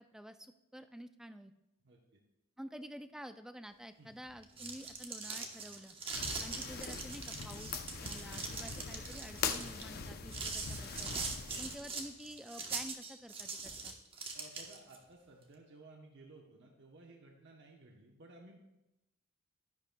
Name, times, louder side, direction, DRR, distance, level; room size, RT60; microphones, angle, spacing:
voice 1, 0.0-1.5 2.6-6.0 6.4-11.1 11.6-14.0, equal, ahead, 10 dB, 0.3 m, -50 dB
voice 2, 1.8-2.2 4.0-4.1 6.1-6.4 14.3-18.6, right 2 dB, 55° right, 0 dB, 0.9 m, -57 dB
sound 1, 4.3-15.0, right 4 dB, 25° right, 1.0 m, -42 dB
sound 2, 6.1-11.8, left 5 dB, 45° left, 0.6 m, -42 dB
11.5 x 10.5 x 2.3 m, 0.94 s
head